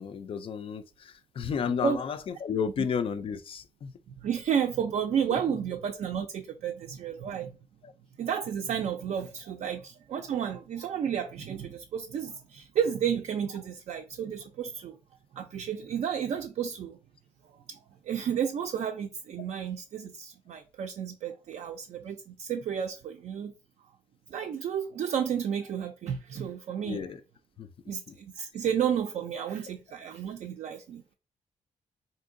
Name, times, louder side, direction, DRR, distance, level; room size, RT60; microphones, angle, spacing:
voice 1, 0.0-3.9 5.3-5.4 7.8-7.9 26.8-27.2 27.6-27.7 28.1-28.2, left 7 dB, 45° left, 0.3 m, -33 dB
voice 2, 4.2-7.5 8.2-15.0 15.3-17.0 17.4-17.8 18.0-23.5 24.3-27.0 27.9-31.1, right 8 dB, 55° right, 0.4 m, -32 dB
3.6 x 2.6 x 2.5 m
cardioid pair, 130°, 13 cm